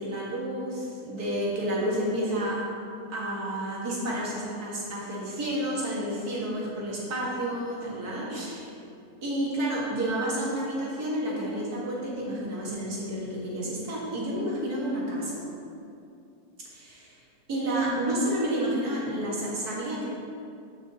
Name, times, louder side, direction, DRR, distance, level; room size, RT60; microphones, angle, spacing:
voice 1, 0.0-2.6 3.1-8.7 9.2-15.4 16.7-17.2 17.5-20.0, right 1 dB, 90° right, -5 dB, 2.5 m, -30 dB
6.7 x 6.0 x 6.8 m, 2.5 s
omnidirectional pair, 1.6 m